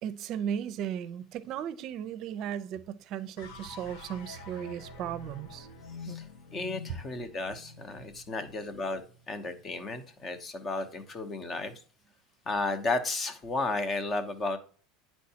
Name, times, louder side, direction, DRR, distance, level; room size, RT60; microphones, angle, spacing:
voice 1, 0.0-5.7 6.1-6.2, right 9 dB, 50° right, 0.5 m, -36 dB
sound 1, 3.4-9.7, left 3 dB, 75° left, 0.9 m, -47 dB
voice 2, 6.5-9.0 9.3-11.7 12.5-14.6, left 3 dB, 30° left, 0.9 m, -33 dB
9.3 x 4.5 x 2.8 m
supercardioid pair, 115°, 0 cm